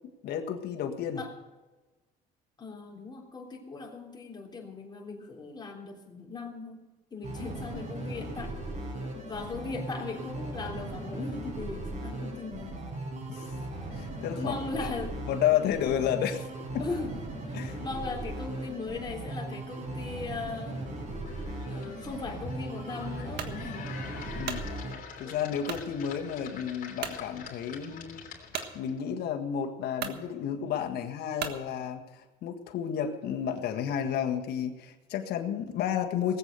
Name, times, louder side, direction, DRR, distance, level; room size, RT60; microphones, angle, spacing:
voice 1, 0.2-1.2 7.7-7.8 13.3-13.4 13.9-14.5 14.8-14.9 15.2-16.5 16.7-16.8 17.5-17.8 24.4-24.7 25.2-28.2 28.7-36.4, left 9 dB, 75° left, 4 dB, 1.6 m, -31 dB
voice 2, 2.6-6.8 7.1-8.6 9.3-12.8 14.3-15.1 16.8-17.1 17.5-20.8 21.7-23.9, left 3 dB, 25° left, 0 dB, 3.7 m, -38 dB
sound 1, 7.2-24.9, right 2 dB, 45° right, 5.8 m, -38 dB
sound 2, 21.2-29.0, left 6 dB, 55° left, 3.1 m, -45 dB
sound 3, 23.4-23.6 24.2-24.7 25.6-25.9 26.4-26.5 27.0-27.2 28.5-28.7 29.5-29.6 30.0-30.2 31.4-31.6, right 8 dB, 75° right, 1.5 m, -36 dB
19.0 x 8.2 x 6.8 m, 1.2 s
cardioid pair, 110°, 17 cm